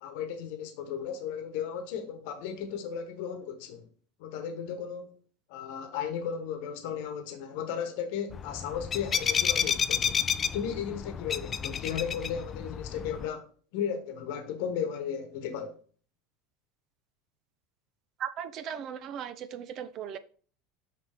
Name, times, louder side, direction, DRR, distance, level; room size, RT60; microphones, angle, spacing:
voice 1, 0.0-3.9 4.2-5.1 5.5-10.2 10.5-15.8, left 8 dB, 70° left, 1.1 m, -35 dB
sound 1, 8.3-13.3, left 7 dB, 25° left, 0.4 m, -30 dB
voice 2, 18.2-20.2, right 8 dB, 40° right, 0.5 m, -37 dB
5.6 x 5.6 x 3.5 m
supercardioid pair, 135°, 0 cm